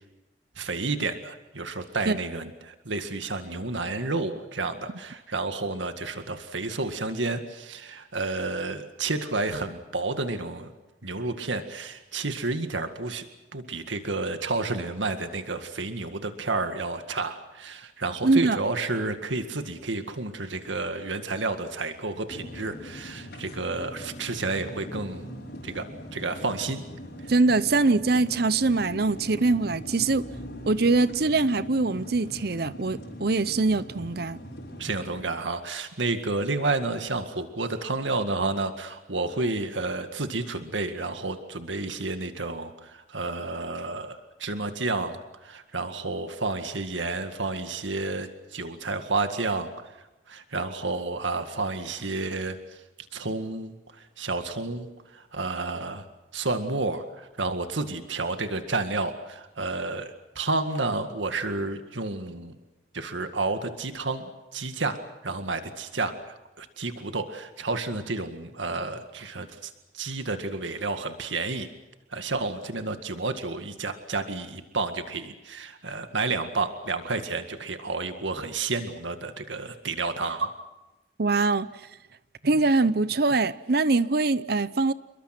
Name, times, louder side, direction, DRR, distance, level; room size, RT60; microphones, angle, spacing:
voice 1, 0.6-10.7 11.0-13.2 13.5-25.3 25.6-25.9 26.1-26.8 27.2-27.3 34.8-52.8 53.1-56.1 56.3-62.6 62.9-65.0 65.2-71.7 72.1-80.5, right 3 dB, 85° right, 2.0 m, -31 dB
voice 2, 18.2-18.6 27.3-30.2 30.7-34.4 81.2-81.7 82.4-84.9, right 3 dB, 55° right, 0.7 m, -23 dB
sound 1, 22.3-35.2, equal, 60° left, 5.4 m, -41 dB
29.0 x 22.5 x 6.1 m
head